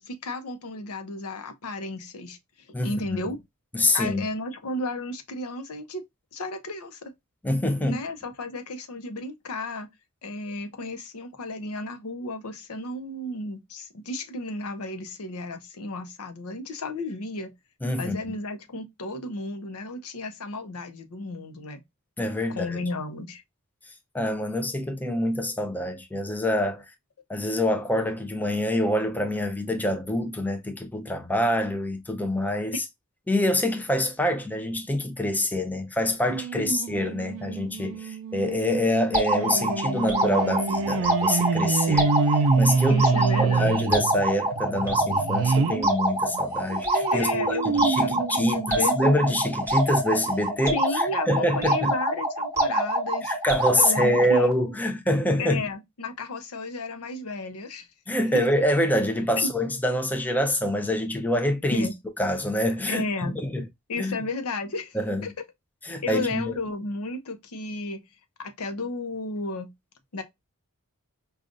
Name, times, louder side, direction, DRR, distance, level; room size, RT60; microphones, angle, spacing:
voice 1, 0.0-2.4 2.7-3.4 3.9-6.0 6.3-7.1 7.8-9.9 10.2-17.5 18.0-21.8 22.6-23.4 36.6-36.9 42.9-43.8 47.1-49.1 50.7-53.3 53.8-54.5 55.4-57.9 59.4-59.5 61.7-61.9 62.9-63.3 63.9-65.3 66.0-68.0 68.4-69.7 70.1-70.2, left 2 dB, 90° left, 0.7 m, -33 dB
voice 2, 3.7-4.2 7.4-8.0 17.8-18.2 22.2-22.8 24.1-26.8 27.3-32.8 33.3-42.1 42.6-43.1 43.4-51.9 53.2-55.6 58.1-61.9 62.2-63.6 64.0-64.1 64.9-65.3 65.8-66.5, left 1 dB, 10° left, 0.5 m, -26 dB
sound 1, 36.3-45.9 46.3-49.4 49.9-50.0 50.3-50.4, right 4 dB, 65° right, 0.4 m, -27 dB
sound 2, 39.1-54.5, right 1 dB, 15° right, 1.1 m, -26 dB
5.0 x 2.4 x 2.5 m
head